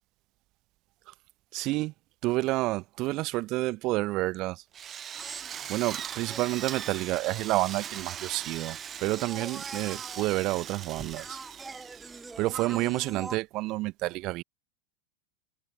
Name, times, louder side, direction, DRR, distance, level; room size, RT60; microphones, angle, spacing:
voice 1, 1.5-1.9 2.2-4.6 5.7-11.4 12.4-14.4, right 20 dB, 50° right, 1.3 m, -29 dB
Drill, 4.7-12.6, right 9 dB, 30° right, 1.8 m, -40 dB
sound 1, 5.1-13.4, right 3 dB, 10° right, 1.1 m, -45 dB
hypercardioid pair, 95°, 0 cm